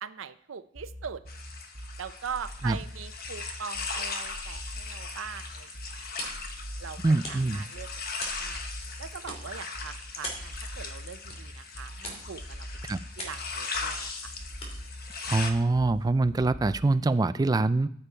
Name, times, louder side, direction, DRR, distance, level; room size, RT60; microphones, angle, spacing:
voice 1, 0.0-1.2 2.0-6.3 6.8-7.0 7.3-7.9 8.4-8.6 9.0-12.7 13.2-14.3, right 7 dB, 90° right, 13 dB, 0.6 m, -41 dB
sound 1, 0.7-16.7, equal, 50° right, 3.8 m, -43 dB
sound 2, 1.3-15.5, left 4 dB, 50° left, 1.2 m, -39 dB
sound 3, 5.1-16.3, left 1 dB, 35° left, 2.8 m, -45 dB
voice 2, 7.0-7.6 12.8-13.0 15.3-17.9, right 2 dB, 20° right, 13 dB, 0.3 m, -24 dB
14.5 x 6.8 x 4.4 m, 0.68 s
head